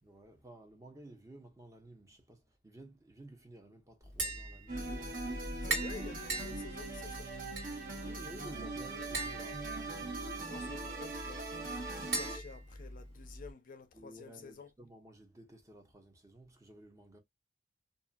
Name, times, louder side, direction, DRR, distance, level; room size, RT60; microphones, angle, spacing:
voice 1, 0.0-5.2 8.0-10.9 13.9-17.2, right 1 dB, 20° right, 0.7 m, -54 dB
Tap, 4.0-13.5, right 2 dB, 75° right, 1.7 m, -42 dB
sound 1, 4.7-12.4, right 2 dB, 50° right, 1.1 m, -41 dB
voice 2, 5.6-7.4 10.5-14.7, left 4 dB, 50° left, 0.5 m, -50 dB
2.6 x 2.5 x 2.2 m
head